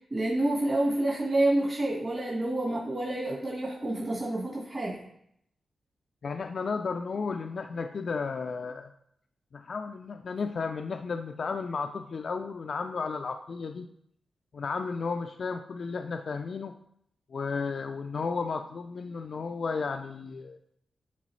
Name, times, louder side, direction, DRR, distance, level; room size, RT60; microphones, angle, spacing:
voice 1, 0.1-5.0, right 1 dB, 30° right, -4 dB, 1.4 m, -28 dB
voice 2, 6.2-8.9 9.5-13.9 14.5-16.7 17.3-20.6, left 4 dB, 55° left, 5 dB, 0.3 m, -33 dB
10.0 x 3.7 x 3.1 m, 0.72 s
wide cardioid pair, 100°, 0 cm